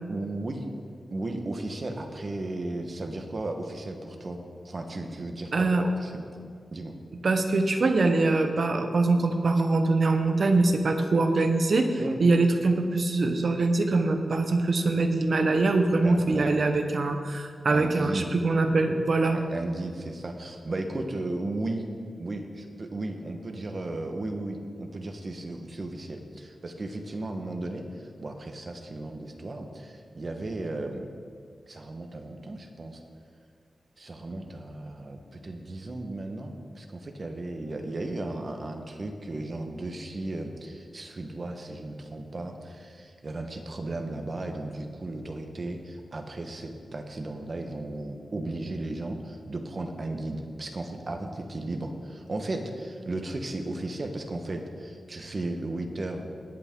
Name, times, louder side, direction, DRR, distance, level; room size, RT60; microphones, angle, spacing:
voice 1, 0.1-0.7 1.1-6.2 6.7-7.0 12.0-12.2 16.0-16.5 17.7-18.3 19.3-21.9 22.2-31.1 31.7-33.0 34.0-56.3, right 2 dB, 40° right, 4 dB, 1.2 m, -35 dB
voice 2, 5.5-5.8 7.2-19.4, right 3 dB, 55° right, 6 dB, 1.0 m, -23 dB
19.0 x 8.4 x 3.8 m, 2.1 s
wide cardioid pair, 120°, 0 cm